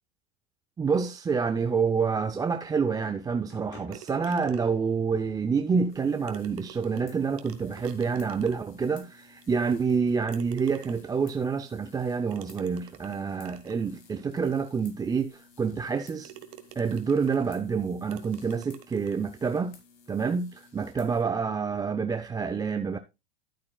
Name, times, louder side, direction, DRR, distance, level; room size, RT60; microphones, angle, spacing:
voice 1, 0.8-16.3 16.8-19.8 20.1-23.0, right 5 dB, 10° right, 0.5 m, -28 dB
sound 1, 1.2-7.5, left 5 dB, 70° left, 4.6 m, -57 dB
sound 2, 3.9-4.9 5.9-6.0 6.3-8.8 9.4-9.5 10.3-11.2 12.3-13.8 14.5-14.6 15.1-15.2 15.8-15.9 16.2-17.5 18.1-19.2, right 12 dB, 40° right, 1.4 m, -49 dB
sound 3, 5.9-21.2, left 5 dB, 55° left, 3.4 m, -57 dB
11.5 x 9.2 x 2.2 m
hypercardioid pair, 120°, 33 cm